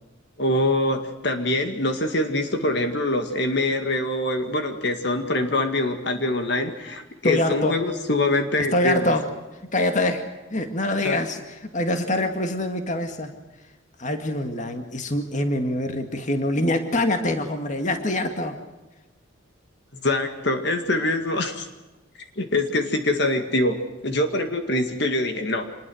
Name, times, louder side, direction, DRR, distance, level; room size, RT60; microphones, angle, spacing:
voice 1, 0.4-9.1 11.0-11.2 20.0-21.7 22.4-25.7, left 1 dB, 55° left, 6 dB, 2.1 m, -24 dB
voice 2, 7.2-7.8 8.7-9.3 9.7-13.3 14.0-18.6, left 1 dB, 35° left, 6 dB, 2.1 m, -25 dB
26.5 x 21.0 x 6.4 m, 1.1 s
head